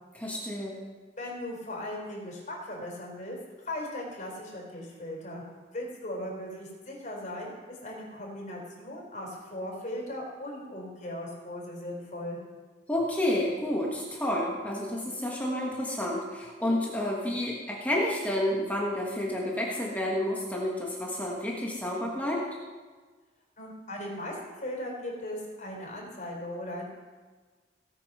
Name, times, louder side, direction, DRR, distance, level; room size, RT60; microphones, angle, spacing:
voice 1, 0.1-0.8 12.9-22.4, left 1 dB, 10° left, -3 dB, 1.4 m, -30 dB
voice 2, 1.2-3.4 3.6-5.4 5.7-12.4 23.6-26.9, left 1 dB, 45° left, -2 dB, 3.9 m, -38 dB
18.0 x 8.4 x 5.5 m, 1.4 s
head